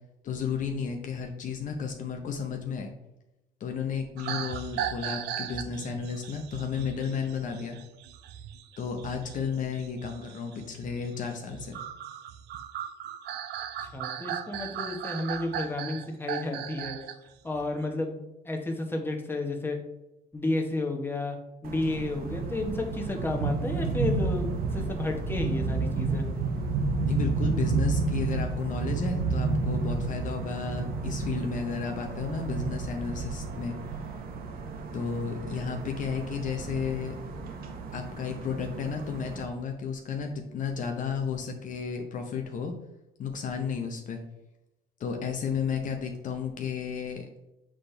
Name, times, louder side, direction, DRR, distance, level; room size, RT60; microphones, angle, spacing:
voice 1, 0.2-2.9 3.6-7.8 8.8-11.8 27.0-33.7 34.9-37.2 37.9-42.7 43.2-44.2 45.0-47.3, left 6 dB, 50° left, 3 dB, 0.8 m, -33 dB
sound 1, 4.2-17.1 17.5-17.8, right 9 dB, 80° right, 0.5 m, -37 dB
voice 2, 13.9-17.0 17.4-19.8 20.3-21.4 21.6-26.2, left 2 dB, 15° left, 2 dB, 1.1 m, -32 dB
sound 2, 21.6-39.4, right 4 dB, 60° right, 0.9 m, -31 dB
7.5 x 4.1 x 3.3 m, 0.95 s
cardioid pair, 110°, 17 cm